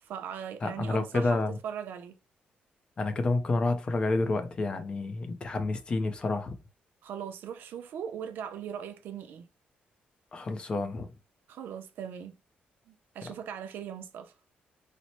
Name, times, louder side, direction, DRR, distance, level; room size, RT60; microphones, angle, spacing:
voice 1, 0.0-2.2 7.0-9.5 11.5-12.3 12.9-14.3, right 8 dB, 75° right, 0.5 m, -39 dB
voice 2, 0.6-1.6 3.0-6.6 10.3-11.1, left 3 dB, 30° left, 0.5 m, -29 dB
4.1 x 2.1 x 2.9 m
wide cardioid pair, 175°, 3 cm